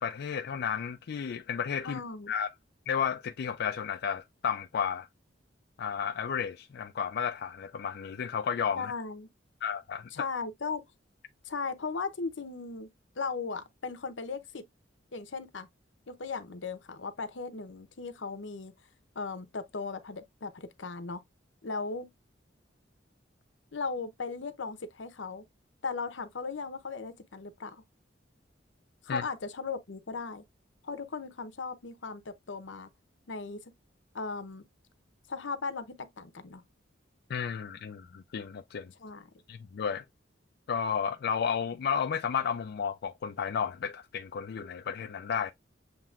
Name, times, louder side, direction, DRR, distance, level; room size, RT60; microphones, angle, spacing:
voice 1, 0.0-2.0 2.3-2.5 2.9-5.1 5.8-8.9 9.6-10.2 29.1-29.2 37.3-38.9 39.5-40.0 40.7-45.5, left 7 dB, 60° left, 0.3 m, -32 dB
voice 2, 1.8-2.3 8.8-9.3 10.1-10.8 11.4-12.9 13.2-14.7 15.1-15.7 16.1-18.7 19.2-21.2 21.6-22.1 23.7-25.5 25.8-27.8 29.0-30.4 30.8-32.9 33.3-33.6 34.1-34.6 35.3-36.6 39.0-39.3, left 4 dB, 80° left, 0.8 m, -37 dB
7.3 x 2.9 x 2.4 m
head